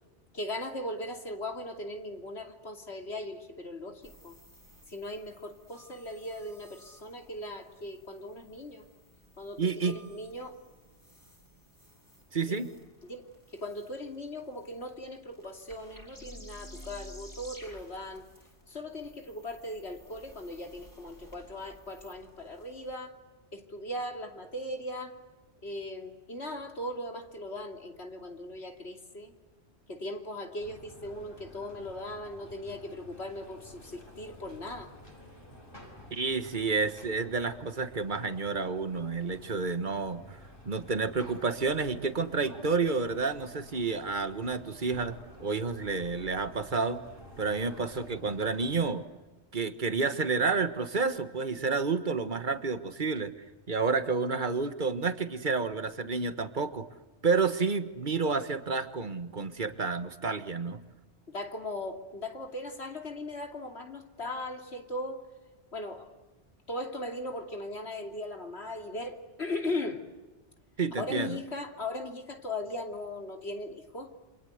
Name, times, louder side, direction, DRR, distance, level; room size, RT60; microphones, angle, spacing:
voice 1, 0.3-4.3 4.9-8.8 9.4-10.6 12.4-12.6 13.1-13.2 13.5-18.2 18.7-23.1 23.5-25.1 25.6-29.3 29.9-34.9 61.3-65.2 65.7-66.1 66.7-70.0 71.0-74.1, left 1 dB, 70° left, 4 dB, 3.1 m, -38 dB
sound 1, 4.0-22.9, equal, 15° left, 4.3 m, -54 dB
voice 2, 9.6-10.0 12.3-12.7 36.1-40.2 40.6-47.0 47.4-49.0 49.5-53.3 53.7-56.9 57.2-60.8 70.8-71.4, right 4 dB, 45° right, 10 dB, 1.7 m, -30 dB
sound 2, 30.6-48.9, left 1 dB, 50° left, 5.9 m, -51 dB
28.0 x 26.0 x 8.1 m, 1.1 s
omnidirectional pair, 1.2 m